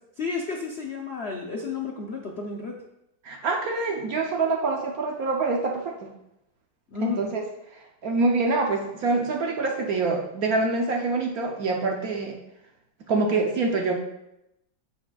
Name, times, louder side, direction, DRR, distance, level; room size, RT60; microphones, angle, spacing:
voice 1, 0.2-2.7 6.9-7.2, left 4 dB, 75° left, 0 dB, 0.5 m, -32 dB
voice 2, 3.2-5.9 7.0-7.4 8.0-12.4 13.1-14.0, right 3 dB, 60° right, 1 dB, 1.0 m, -25 dB
14.5 x 5.0 x 2.4 m, 0.86 s
omnidirectional pair, 2.2 m